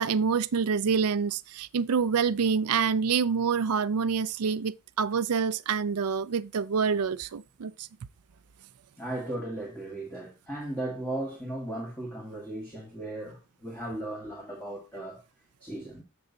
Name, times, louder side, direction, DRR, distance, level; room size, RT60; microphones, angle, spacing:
voice 1, 0.0-7.9, right 6 dB, 80° right, 0.5 m, -27 dB
voice 2, 9.0-15.2 15.6-16.0, right 1 dB, 5° left, 1.8 m, -36 dB
7.0 x 6.5 x 3.8 m
head